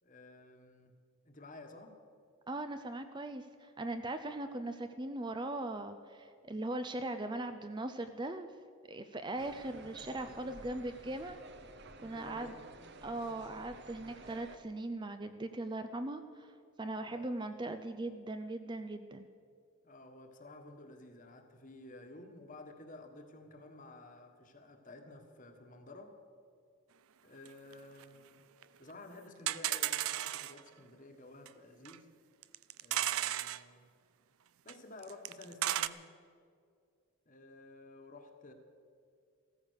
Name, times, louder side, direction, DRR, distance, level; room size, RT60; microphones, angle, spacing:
voice 1, 0.0-0.9 1.2-2.0 12.1-12.7 17.0-17.3 19.8-26.2 27.2-28.4 28.8-32.1 32.8-33.9 34.6-36.1 37.2-38.5, left 2 dB, 35° left, 5 dB, 1.5 m, -53 dB
voice 2, 2.5-8.5 8.9-11.4 12.0-12.5 13.0-16.5 16.8-19.3, right 2 dB, 20° right, 9 dB, 0.5 m, -39 dB
sound 1, 9.4-14.6, right 3 dB, 50° right, 0.9 m, -52 dB
sound 2, 27.5-27.6 27.7-27.8 28.0-28.1 28.6-28.7 28.9-29.0 29.5-30.6 31.5-31.6 31.9-32.0 32.4-33.6 34.7-34.8 35.0-35.9, right 13 dB, 75° right, 0.5 m, -34 dB
16.0 x 14.0 x 6.5 m, 2.3 s
head